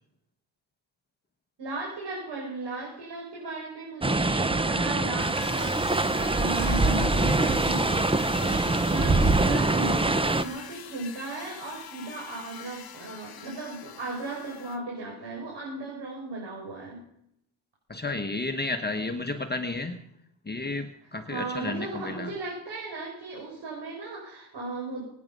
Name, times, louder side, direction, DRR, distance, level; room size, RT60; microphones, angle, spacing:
voice 1, 1.6-6.0 6.3-17.0 21.3-25.0, right 3 dB, 60° right, -3 dB, 5.9 m, -36 dB
sound 1, 4.0-10.4, right 2 dB, 10° right, 0.6 m, -24 dB
sound 2, 5.2-14.8, left 9 dB, 50° left, 1.2 m, -43 dB
voice 2, 17.9-20.0 20.5-22.3, left 2 dB, 20° left, 6 dB, 1.1 m, -32 dB
23.5 x 9.6 x 5.3 m, 0.74 s
cardioid pair, 125°, 47 cm